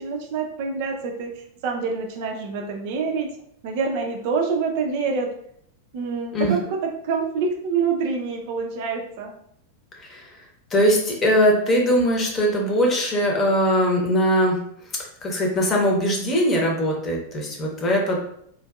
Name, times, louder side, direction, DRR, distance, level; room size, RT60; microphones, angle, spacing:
voice 1, 0.0-3.3 3.6-5.3 5.9-9.3, right 5 dB, 50° right, 2 dB, 0.4 m, -26 dB
voice 2, 10.0-10.3 10.7-14.6 15.2-18.2, equal, 25° left, -1 dB, 0.9 m, -21 dB
3.7 x 2.5 x 2.3 m, 0.69 s
figure-of-eight pair, 90°, 0 cm